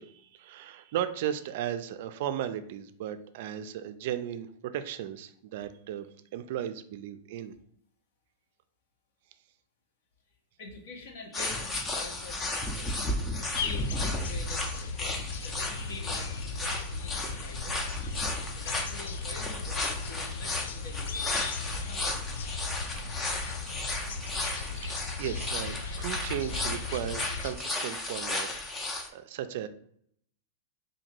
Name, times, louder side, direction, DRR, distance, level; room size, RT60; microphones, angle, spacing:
voice 1, 0.0-6.1 6.3-7.5 24.8-28.5 28.7-29.7, right 10 dB, 60° right, 10 dB, 0.3 m, -36 dB
voice 2, 10.6-17.8 18.5-22.4, left 3 dB, 65° left, 2 dB, 0.9 m, -46 dB
sound 1, 11.3-29.1, left 2 dB, 15° left, 0.5 m, -34 dB
sound 2, 13.5-27.5, left 4 dB, 85° left, 0.3 m, -37 dB
Scratching (performance technique), 22.9-23.7 24.0-24.8 25.1-25.2 25.4-27.4 27.6-28.2, right 5 dB, 30° right, 0.8 m, -53 dB
2.8 x 2.6 x 4.3 m, 0.66 s
supercardioid pair, 145°, 0 cm